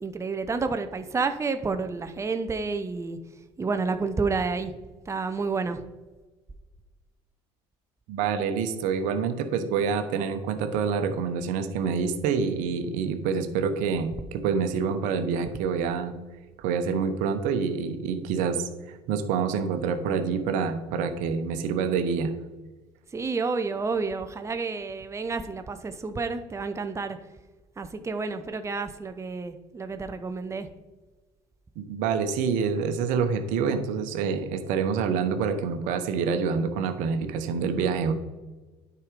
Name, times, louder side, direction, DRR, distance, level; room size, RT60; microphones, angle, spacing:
voice 1, 0.0-3.2 3.6-4.8 5.1-5.8 23.1-27.2 27.8-30.7, right 4 dB, 20° right, 8 dB, 0.8 m, -30 dB
voice 2, 8.1-16.1 16.6-22.3 31.8-38.1, right 6 dB, 70° right, 8 dB, 1.0 m, -27 dB
9.6 x 4.9 x 5.2 m, 1.2 s
hypercardioid pair, 75°, 14 cm